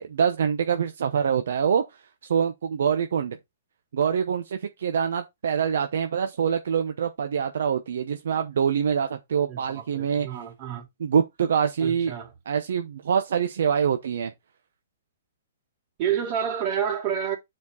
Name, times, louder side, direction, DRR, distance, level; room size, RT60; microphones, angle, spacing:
voice 1, 0.0-1.8 2.2-3.4 3.9-10.3 11.0-12.1 12.5-14.3, right 7 dB, 70° right, 0.8 m, -25 dB
voice 2, 9.5-10.9 11.8-12.3 16.0-17.4, right 8 dB, 40° right, 3.1 m, -29 dB
7.3 x 4.5 x 4.0 m
hypercardioid pair, 135°, 0 cm